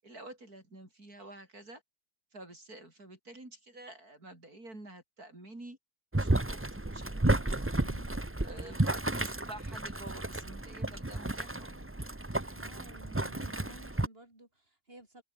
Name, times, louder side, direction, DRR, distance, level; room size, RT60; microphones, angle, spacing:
voice 1, 0.0-1.8 2.3-5.8 6.2-7.7 8.4-11.9, right 2 dB, 55° right, 7.4 m, -49 dB
Boiling, 6.1-14.1, right 2 dB, 10° right, 0.8 m, -32 dB
voice 2, 7.8-8.1 12.5-15.2, right 1 dB, 30° right, 6.6 m, -54 dB
omnidirectional pair, 1.9 m